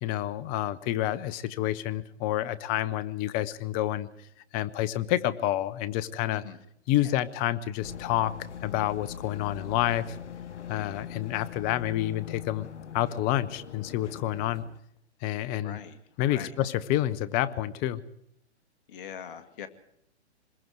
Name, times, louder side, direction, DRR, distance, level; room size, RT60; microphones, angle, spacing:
voice 1, 0.0-4.1 4.5-6.4 6.9-8.3 8.6-10.2 10.7-12.7 12.9-14.6 15.2-15.8 16.2-18.0, left 13 dB, 25° left, 17 dB, 0.9 m, -28 dB
sound 1, 7.8-14.8, left 9 dB, 80° left, 1.1 m, -42 dB
voice 2, 15.6-16.0 16.3-16.5 18.9-19.7, left 8 dB, 45° left, 10 dB, 2.2 m, -41 dB
26.5 x 21.5 x 4.8 m, 0.74 s
hypercardioid pair, 130°, 35 cm